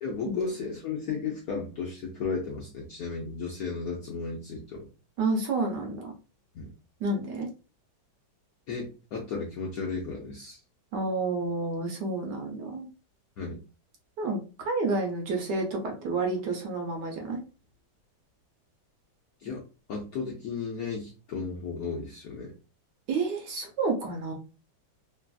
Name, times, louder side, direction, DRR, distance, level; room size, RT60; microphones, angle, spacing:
voice 1, 0.0-4.9 6.5-6.7 8.7-10.6 13.4-13.6 19.4-19.6 19.9-22.5, left 4 dB, 70° left, -1 dB, 0.8 m, -34 dB
voice 2, 5.2-6.1 7.0-7.5 10.9-12.9 14.2-17.4 23.1-24.3, right 3 dB, 70° right, 2 dB, 1.2 m, -30 dB
3.3 x 2.4 x 2.2 m, 0.33 s
omnidirectional pair, 2.1 m